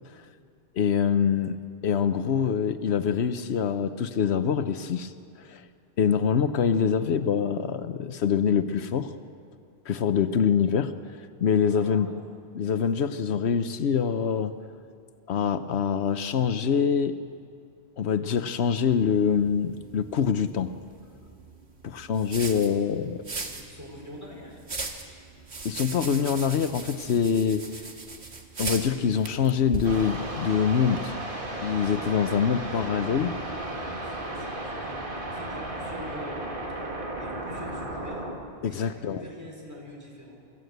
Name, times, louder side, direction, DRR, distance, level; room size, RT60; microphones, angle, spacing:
voice 1, 0.7-1.6 1.8-5.1 5.4-5.6 6.0-9.1 9.9-10.9 11.4-12.1 12.5-14.5 15.3-17.2 18.0-20.7 21.8-23.2 25.6-27.7 28.6-31.1 31.6-33.4 38.6-39.2, left 7 dB, 85° left, 11 dB, 1.0 m, -25 dB
voice 2, 11.7-12.1 23.4-24.6 33.4-36.6 37.2-38.3 38.6-40.4, equal, 15° right, -2 dB, 4.9 m, -44 dB
sound 1, 18.9-31.0, right 4 dB, 90° right, 1.9 m, -39 dB
sound 2, 29.8-38.4, right 1 dB, 55° right, 2.3 m, -34 dB
25.0 x 15.0 x 8.0 m, 2.3 s
omnidirectional pair, 1.1 m